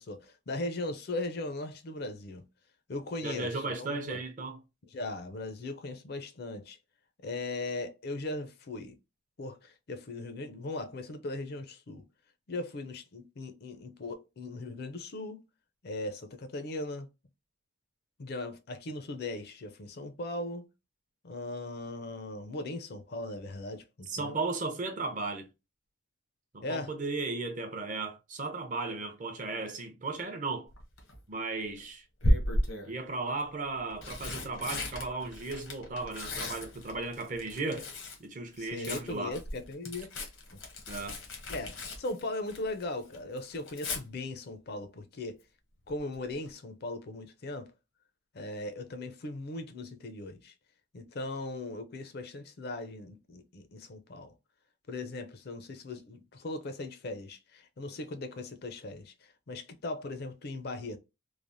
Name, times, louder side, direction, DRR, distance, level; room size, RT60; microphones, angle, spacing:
voice 1, 0.0-2.4 2.9-4.2 4.9-6.8 7.2-9.0 9.4-12.0 12.5-15.4 15.8-17.1 18.2-20.7 21.2-24.4 26.6-27.0 38.6-40.1 40.5-40.6 41.5-45.4 45.9-47.7 48.3-50.5 50.9-54.3 54.9-61.0, left 2 dB, 55° left, 0.5 m, -38 dB
voice 2, 3.2-4.6 24.1-25.5 26.5-30.7 31.3-32.0 32.8-37.9 38.2-39.4 40.9-41.2, right 3 dB, 40° right, 0.6 m, -35 dB
Tearing, 30.7-31.2 32.2-33.0 33.7-38.2 38.5-42.8 43.1-44.0 45.9-46.2 46.5-46.6, equal, 80° left, 0.9 m, -34 dB
3.2 x 2.0 x 2.5 m
head